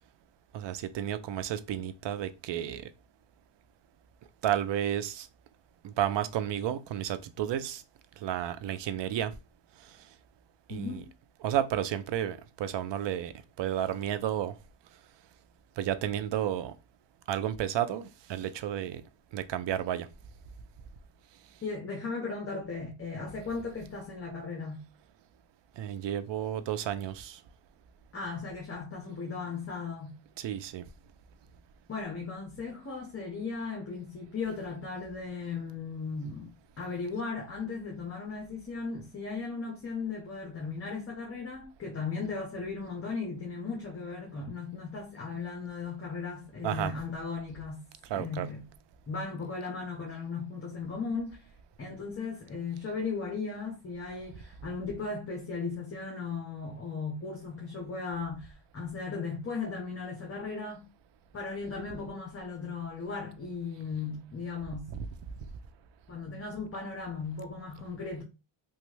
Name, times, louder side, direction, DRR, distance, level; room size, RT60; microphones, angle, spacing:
voice 1, 0.5-2.9 4.4-5.3 5.8-7.8 8.2-9.4 9.8-10.0 10.7-11.0 11.4-14.5 15.8-16.7 17.3-19.0 19.3-20.1 25.8-27.4 30.4-30.9 46.6-46.9 48.0-48.5 64.9-65.1, right 10 dB, 60° right, 0.5 m, -32 dB
voice 2, 10.7-11.1 21.6-24.8 28.1-30.1 31.9-36.5 36.8-47.8 48.1-48.6 49.1-51.5 51.8-60.9 61.3-64.9 66.1-68.2, left 4 dB, 30° left, 0.8 m, -37 dB
3.0 x 2.3 x 3.1 m
cardioid pair, 105°, 48 cm